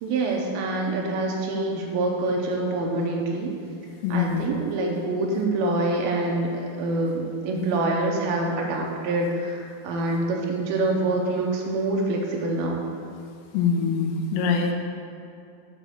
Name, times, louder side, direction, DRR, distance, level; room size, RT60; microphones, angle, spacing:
voice 1, 0.0-3.5 4.1-12.8, right 2 dB, 85° right, 0 dB, 2.1 m, -26 dB
voice 2, 4.0-4.5 13.5-14.7, left 5 dB, 85° left, 3 dB, 2.8 m, -23 dB
6.5 x 5.2 x 6.2 m, 2.5 s
omnidirectional pair, 5.0 m